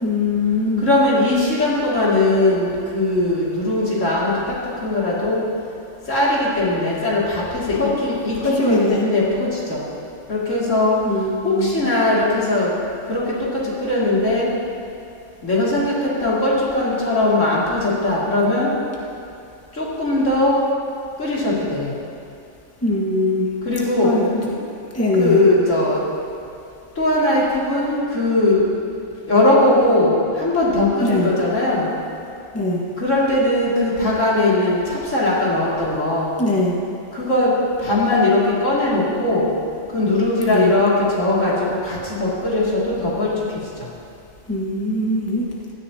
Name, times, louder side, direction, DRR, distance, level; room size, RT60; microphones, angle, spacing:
voice 1, 0.0-0.9 7.8-7.9 8.3-9.1 11.0-11.8 22.8-23.5 24.0-24.5 24.9-25.4 31.0-31.3 32.5-32.8 36.4-36.8 40.5-40.7 44.5-45.4, left 2 dB, 10° left, -4 dB, 1.6 m, -21 dB
voice 2, 0.8-4.4 4.8-5.4 6.1-9.8 10.3-10.9 11.4-12.7 13.1-14.5 15.4-18.7 19.8-20.6 21.2-21.9 23.6-24.1 25.2-26.0 27.0-28.7 29.3-31.9 33.0-36.3 37.1-37.5 37.8-39.5 39.9-41.5 41.8-43.3, left 2 dB, 70° left, -7 dB, 3.0 m, -19 dB
16.5 x 13.5 x 2.9 m, 2.5 s
omnidirectional pair, 1.3 m